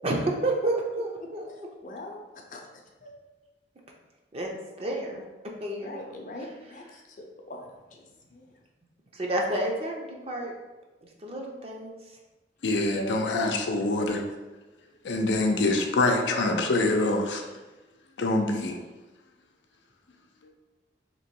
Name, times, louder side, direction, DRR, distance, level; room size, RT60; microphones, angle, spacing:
voice 1, 0.0-1.7 4.3-4.5 4.8-5.2 5.6-6.1 9.1-10.5 11.2-11.9, right 1 dB, 35° right, 0 dB, 0.6 m, -30 dB
voice 2, 1.5-3.1 5.8-8.4 12.9-13.2, left 1 dB, 45° left, 1 dB, 0.6 m, -42 dB
voice 3, 12.6-14.2 15.0-17.4 18.2-18.8, left 2 dB, 90° left, 3 dB, 0.5 m, -25 dB
3.0 x 3.0 x 4.5 m, 1.2 s
head